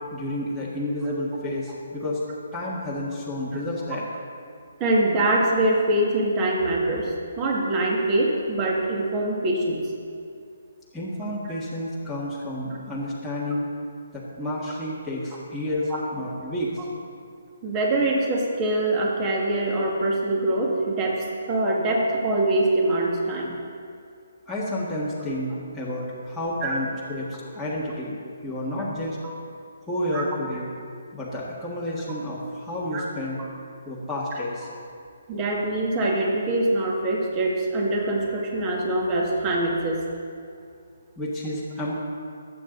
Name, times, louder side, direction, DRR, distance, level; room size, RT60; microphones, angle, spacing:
voice 1, 0.1-2.2 2.5-4.0 10.9-13.7 14.1-16.7 24.5-28.1 28.4-29.2 29.9-30.7 31.1-33.4 33.9-34.7 41.2-41.9, left 1 dB, ahead, -9 dB, 1.7 m, -30 dB
voice 2, 4.8-9.8 15.9-16.0 17.6-21.2 21.5-23.6 26.6-26.7 30.1-30.2 32.9-33.0 35.3-40.0, right 1 dB, 20° right, -2 dB, 1.9 m, -24 dB
25.0 x 8.7 x 3.9 m, 2.4 s
hypercardioid pair, 170°, 0 cm